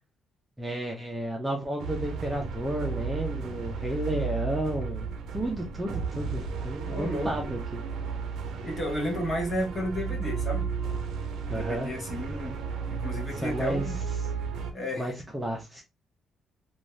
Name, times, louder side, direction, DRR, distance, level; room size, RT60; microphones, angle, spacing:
voice 1, 0.6-5.1 5.3-7.8 11.5-11.9 13.4-13.8 15.0-15.8, right 1 dB, 10° right, 0.5 m, -32 dB
sound 1, 1.8-14.7, right 5 dB, 75° right, 0.5 m, -34 dB
voice 2, 6.9-7.4 8.6-10.7 11.5-12.6 12.9-14.0 14.7-15.1, equal, 25° left, 0.9 m, -32 dB
2.5 x 2.2 x 3.1 m
cardioid pair, 175°, 0 cm